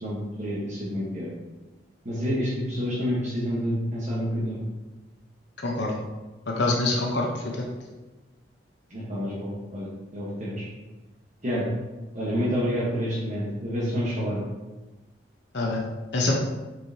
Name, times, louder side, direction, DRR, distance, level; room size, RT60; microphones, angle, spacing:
voice 1, 0.0-1.3 2.0-4.6 8.9-10.6 11.4-11.7 12.1-14.4, equal, 40° right, -7 dB, 1.2 m, -28 dB
voice 2, 5.6-5.9 6.5-7.3 7.6-7.7 15.5-15.8 16.1-16.3, left 2 dB, 65° left, -1 dB, 0.8 m, -25 dB
7.4 x 4.7 x 2.8 m, 1.2 s
head